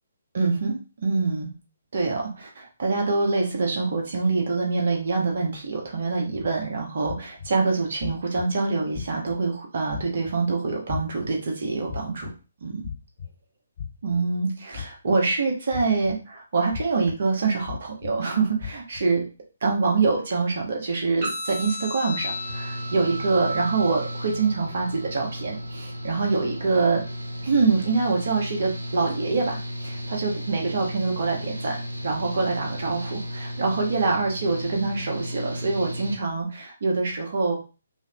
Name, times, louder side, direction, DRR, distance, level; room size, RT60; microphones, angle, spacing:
voice 1, 0.3-1.5 1.9-12.3 12.6-12.9 14.0-19.2 19.6-27.0 27.4-31.8 32.0-37.6, right 4 dB, 50° right, 0 dB, 1.3 m, -25 dB
sound 1, 6.4-6.5 7.0-7.5 8.0-8.4 8.9-9.3 9.9-10.3 10.9-11.3 11.9-12.3 12.8-13.3 13.8-14.2 14.7-15.2 15.7-16.1 16.7-17.1 17.7-18.1 18.6-19.0, left 7 dB, 40° left, 1.4 m, -35 dB
sound 2, 21.2-29.2, equal, 30° right, 1.8 m, -37 dB
Engine / Mechanical fan, 22.2-36.2, equal, 85° right, 0.9 m, -34 dB
5.0 x 2.8 x 2.5 m, 0.33 s
figure-of-eight pair, 135°, 0 cm